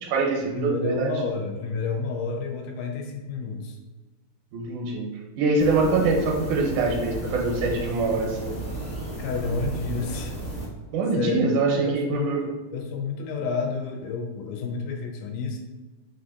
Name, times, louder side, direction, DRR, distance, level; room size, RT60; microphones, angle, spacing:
voice 1, 0.0-1.1 4.5-5.1 5.4-8.6 10.9-12.4, right 3 dB, 85° right, 0 dB, 2.1 m, -24 dB
voice 2, 0.6-3.8 9.2-10.3 11.1-15.6, left 4 dB, 80° left, 2 dB, 2.0 m, -30 dB
sound 1, 5.6-10.7, right 1 dB, 65° left, 0.8 m, -33 dB
5.3 x 2.5 x 2.4 m, 1.3 s
omnidirectional pair, 3.5 m